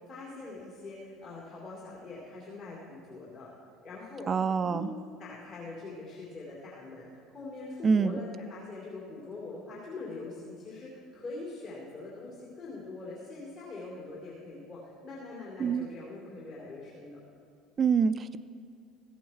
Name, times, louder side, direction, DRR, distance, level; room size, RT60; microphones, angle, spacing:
voice 1, 0.1-3.5 3.8-4.3 4.6-4.9 5.2-17.2, left 3 dB, 45° left, -6 dB, 2.6 m, -43 dB
voice 2, 4.3-4.9 7.8-8.2 15.6-15.9 17.8-18.4, right 6 dB, 30° right, 12 dB, 0.4 m, -26 dB
14.5 x 8.3 x 4.6 m, 2.3 s
figure-of-eight pair, 65°, 0 cm